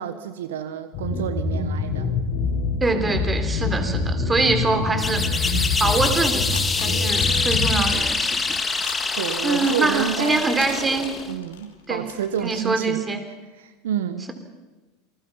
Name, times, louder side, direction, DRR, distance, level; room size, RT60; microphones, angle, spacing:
voice 1, 0.0-2.1 9.2-10.5 11.3-13.0 13.6-14.3, right 9 dB, 75° right, 11 dB, 1.2 m, -29 dB
sound 1, 0.9-7.7, left 4 dB, 55° left, 4.2 m, -25 dB
voice 2, 2.8-5.2 5.8-8.6 9.4-11.1 11.9-12.1 12.4-13.2, right 3 dB, 20° right, 7 dB, 3.5 m, -24 dB
sound 2, 5.0-11.3, left 4 dB, 20° left, 2.1 m, -25 dB
sound 3, 6.5-12.7, left 8 dB, 75° left, 2.8 m, -40 dB
27.5 x 20.5 x 5.8 m, 1.2 s
hypercardioid pair, 85°, 0 cm